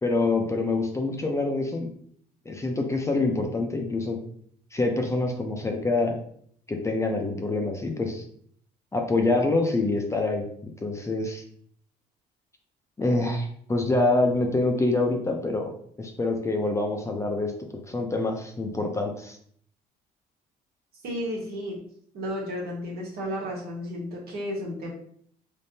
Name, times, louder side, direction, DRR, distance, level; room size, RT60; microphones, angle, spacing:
voice 1, 0.0-1.9 2.5-4.2 4.7-6.2 6.7-8.2 8.9-11.4 13.0-15.7 16.0-17.5 17.9-19.4, left 2 dB, 15° left, 2 dB, 0.5 m, -26 dB
voice 2, 21.0-21.8 22.1-24.9, equal, 65° right, -3 dB, 1.4 m, -33 dB
3.5 x 3.2 x 2.7 m, 0.62 s
cardioid pair, 110°, 17 cm